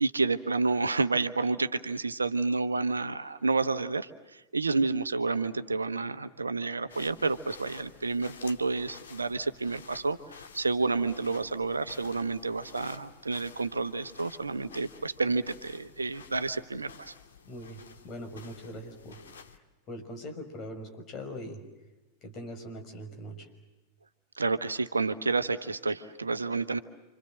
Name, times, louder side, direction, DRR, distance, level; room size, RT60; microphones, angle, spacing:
voice 1, 0.0-17.1 24.3-26.8, right 3 dB, 80° right, 12 dB, 1.1 m, -30 dB
sound 1, 6.9-19.6, left 5 dB, 65° left, 2.0 m, -52 dB
voice 2, 17.4-19.2 19.5-19.6 19.9-21.6 22.2-23.5, equal, 35° left, 6 dB, 5.9 m, -41 dB
29.0 x 26.0 x 7.8 m, 1.1 s
figure-of-eight pair, 90°, 0 cm